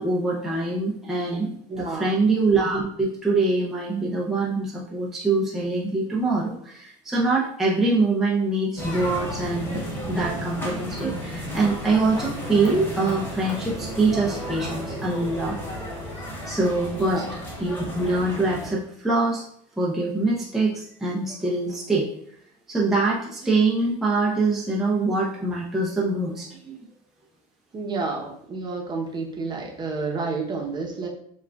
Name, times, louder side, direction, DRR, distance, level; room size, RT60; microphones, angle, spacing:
voice 1, 0.0-9.8 10.1-15.6 16.4-17.2 17.6-19.4 19.8-22.1 22.7-26.8, right 3 dB, ahead, -5 dB, 0.6 m, -24 dB
voice 2, 1.7-2.1 16.9-17.3 27.7-31.1, right 4 dB, 25° right, 0 dB, 0.9 m, -30 dB
sound 1, 8.8-18.7, equal, 15° left, 1.2 m, -33 dB
7.1 x 2.4 x 2.3 m, 0.67 s
supercardioid pair, 125°, 16 cm